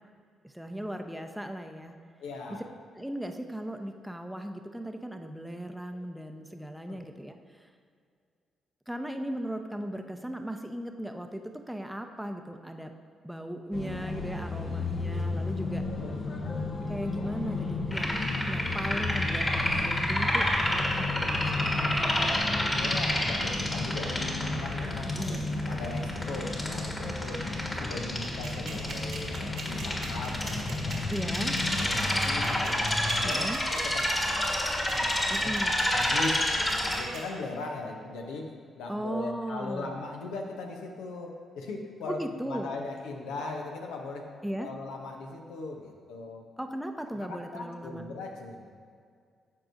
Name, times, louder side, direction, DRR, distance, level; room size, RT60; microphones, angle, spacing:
voice 1, 0.4-2.0 2.5-2.6 2.9-7.7 8.9-12.9 13.2-15.8 16.9-21.7 25.0-25.5 31.1-31.6 33.2-33.6 35.3-35.8 38.9-39.9 42.1-42.7 44.4-44.7 46.6-48.0, right 1 dB, 5° right, 5 dB, 0.7 m, -37 dB
voice 2, 2.2-2.7 5.9-6.0 6.9-7.0 15.8-16.2 22.7-25.4 25.7-27.5 27.8-31.2 31.8-32.8 33.2-35.5 35.9-44.3 44.6-46.4 47.1-48.8, left 3 dB, 80° left, 1 dB, 0.8 m, -39 dB
sound 1, 13.7-33.3, left 3 dB, 50° left, 0.9 m, -34 dB
sound 2, 17.9-37.0, left 1 dB, 20° left, 1.5 m, -30 dB
sound 3, 28.2-37.2, right 7 dB, 80° right, 1.6 m, -42 dB
13.0 x 4.7 x 2.7 m, 2.2 s
hypercardioid pair, 50°, 0 cm